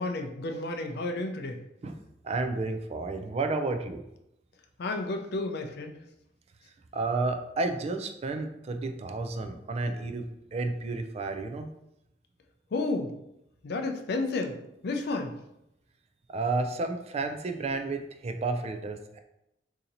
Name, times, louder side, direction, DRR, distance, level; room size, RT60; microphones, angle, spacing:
voice 1, 0.0-1.6 4.8-5.9 12.7-13.1 13.6-14.6 14.8-15.4, left 2 dB, 60° left, 4 dB, 0.4 m, -31 dB
voice 2, 2.2-4.0 6.9-10.2 10.5-11.7 16.3-19.2, right 3 dB, 35° right, 6 dB, 0.3 m, -31 dB
2.8 x 2.7 x 3.9 m, 0.83 s
head